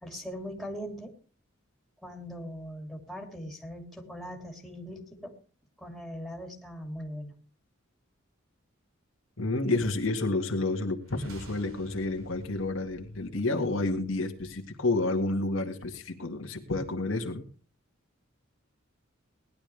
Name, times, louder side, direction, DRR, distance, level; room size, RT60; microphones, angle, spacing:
voice 1, 0.0-1.1 2.0-5.3 5.8-7.3, equal, ahead, 1 dB, 2.8 m, -40 dB
voice 2, 9.4-17.4, left 2 dB, 80° left, 3 dB, 2.0 m, -30 dB
sound 1, 11.0-15.0, equal, 80° right, 3.3 m, -51 dB
19.5 x 11.5 x 3.4 m, 0.38 s
head